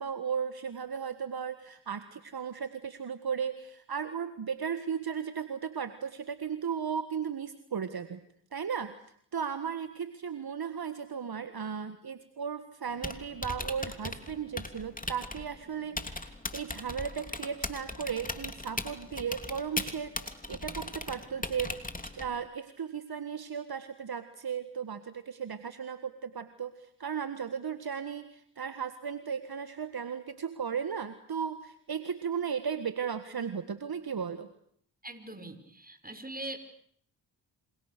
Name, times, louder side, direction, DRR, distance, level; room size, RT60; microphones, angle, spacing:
voice 1, 0.0-8.2 8.5-8.9 9.3-20.1 20.5-21.7 22.0-34.5, right 7 dB, 50° right, 11 dB, 1.7 m, -36 dB
Typing, 12.9-22.5, left 2 dB, 15° left, 3.1 m, -39 dB
voice 2, 35.0-36.6, right 2 dB, 20° right, 9 dB, 5.4 m, -41 dB
28.5 x 27.0 x 6.8 m, 0.64 s
cardioid pair, 50°, 46 cm